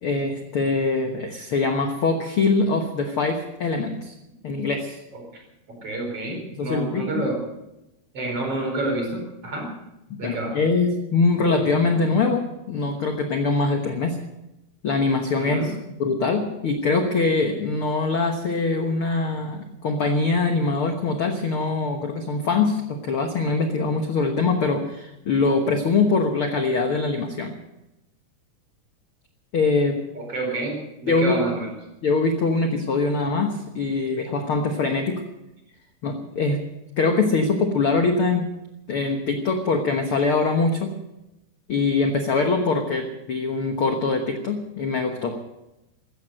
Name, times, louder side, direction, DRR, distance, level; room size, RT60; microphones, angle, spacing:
voice 1, 0.0-4.2 4.4-5.0 6.6-7.2 10.1-14.2 14.8-15.7 16.0-27.5 29.5-30.0 31.1-31.4 32.0-35.2 36.0-36.6 37.0-38.5 38.9-40.9 41.7-45.4, left 3 dB, 70° left, 4 dB, 1.2 m, -23 dB
voice 2, 5.7-7.4 8.1-9.7 10.2-10.6 15.4-15.7 30.2-31.7, right 2 dB, 40° right, 1 dB, 5.5 m, -29 dB
15.5 x 14.0 x 6.5 m, 0.93 s
omnidirectional pair, 4.5 m